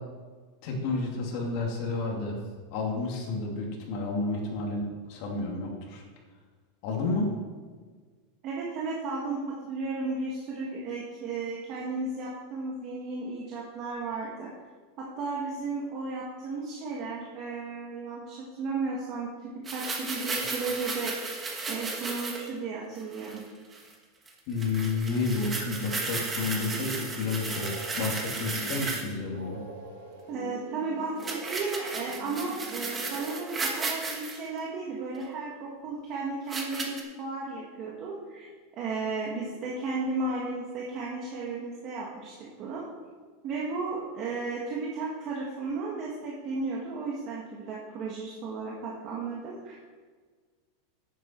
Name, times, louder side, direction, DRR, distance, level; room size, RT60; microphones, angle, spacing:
voice 1, 0.6-2.4 2.7-6.0 6.8-7.3 24.5-29.6, left 3 dB, 50° left, 0 dB, 2.6 m, -31 dB
voice 2, 8.4-14.5 15.0-21.3 21.7-23.4 30.3-38.5 38.8-42.9 43.4-49.9, right 3 dB, 35° right, -4 dB, 1.7 m, -34 dB
sound 1, 19.7-22.5 23.0-23.4 23.7-23.9 24.3-24.4 24.6-29.1 31.2-34.4 35.2-35.3 36.5-37.0, right 3 dB, 15° right, 1.3 m, -34 dB
sound 2, 26.5-33.9, right 1 dB, 90° right, 3.6 m, -43 dB
10.5 x 9.1 x 4.6 m, 1.5 s
supercardioid pair, 165°, 0 cm